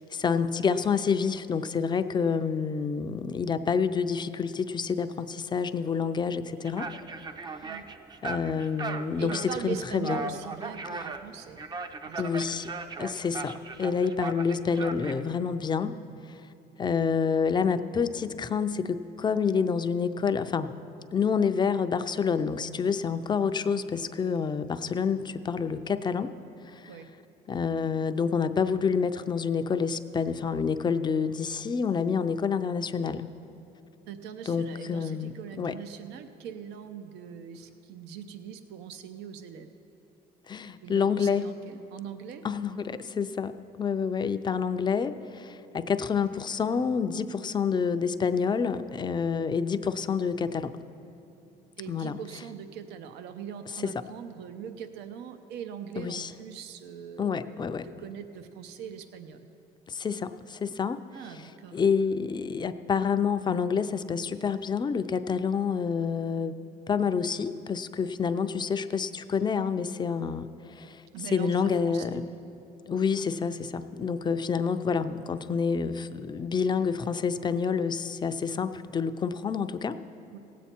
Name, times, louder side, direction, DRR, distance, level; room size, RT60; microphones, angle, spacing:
voice 1, 0.0-6.9 8.2-10.2 12.2-12.7 13.0-16.0 16.3-16.4 16.8-20.7 21.1-26.3 26.7-26.9 27.5-33.3 34.5-35.8 40.5-41.5 42.4-50.8 51.9-52.2 53.8-53.9 56.0-56.3 57.2-57.9 59.9-61.0 61.3-61.4 61.7-66.6 66.9-72.3 72.9-80.0, left 6 dB, 25° left, 11 dB, 0.4 m, -28 dB
sound 1, 6.7-15.2, right 4 dB, 25° right, 0.5 m, -38 dB
voice 2, 9.2-11.6 12.0-12.5 26.9-27.1 34.1-39.7 40.8-42.4 51.8-59.5 61.1-61.8 71.1-72.4 80.3-80.4, right 8 dB, 85° right, 9 dB, 0.6 m, -41 dB
17.0 x 8.3 x 4.4 m, 2.7 s
cardioid pair, 110°, 17 cm